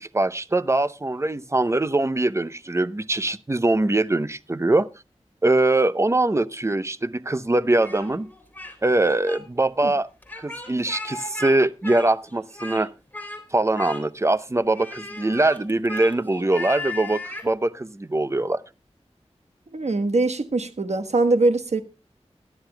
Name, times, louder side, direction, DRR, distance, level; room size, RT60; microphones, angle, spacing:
voice 1, 0.0-4.9 5.4-8.3 8.8-10.1 10.4-12.9 13.5-18.6, right 2 dB, 25° right, 0.7 m, -22 dB
Speech, 7.8-8.8 9.0-9.4 10.2-11.5 11.8-12.8 13.1-13.4 13.7-14.3 14.7-17.5, left 2 dB, 15° left, 3.2 m, -36 dB
voice 2, 19.7-21.8, right 2 dB, 75° right, 1.3 m, -22 dB
22.5 x 11.0 x 2.2 m
wide cardioid pair, 65°, 11 cm